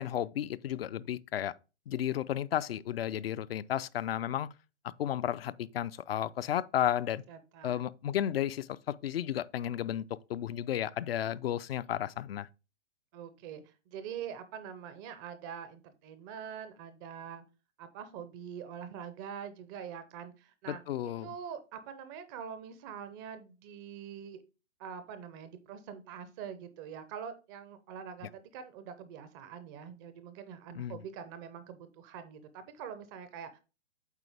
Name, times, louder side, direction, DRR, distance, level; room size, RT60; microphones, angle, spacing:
voice 1, 0.0-1.5 1.9-4.5 5.0-7.2 7.6-12.5 20.7-21.3 30.7-31.0, left 11 dB, 60° left, 0.5 m, -33 dB
voice 2, 7.3-7.8 13.1-17.4 17.8-20.8 21.2-24.4 24.8-33.6, right 8 dB, 15° right, 0.4 m, -44 dB
8.2 x 4.2 x 3.4 m
hypercardioid pair, 130°, 35 cm